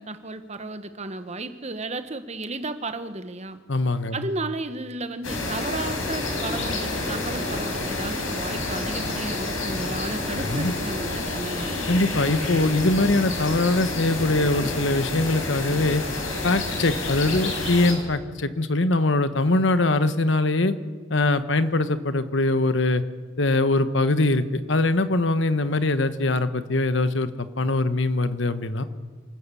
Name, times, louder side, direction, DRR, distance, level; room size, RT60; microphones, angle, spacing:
voice 1, 0.0-3.6 4.1-11.7, right 2 dB, 35° right, 10 dB, 1.2 m, -33 dB
voice 2, 3.7-4.3 10.5-10.7 11.9-16.0 16.4-20.7 21.1-23.0 23.4-28.8, left 2 dB, 65° left, 12 dB, 1.2 m, -22 dB
sound 1, 5.2-17.9, left 2 dB, 90° left, 4.9 m, -29 dB
27.0 x 13.5 x 8.4 m, 1.5 s
head